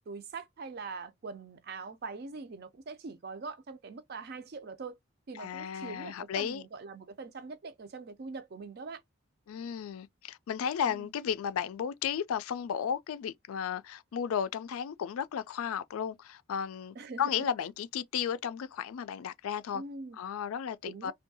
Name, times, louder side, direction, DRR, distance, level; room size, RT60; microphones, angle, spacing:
voice 1, 0.1-5.0 5.3-9.0 10.8-11.1 17.0-17.5 19.7-20.2 20.9-21.1, right 4 dB, 45° right, 0.4 m, -43 dB
voice 2, 5.3-6.6 9.5-19.8 20.1-21.1, left 8 dB, 85° left, 0.4 m, -34 dB
2.6 x 2.2 x 2.6 m
head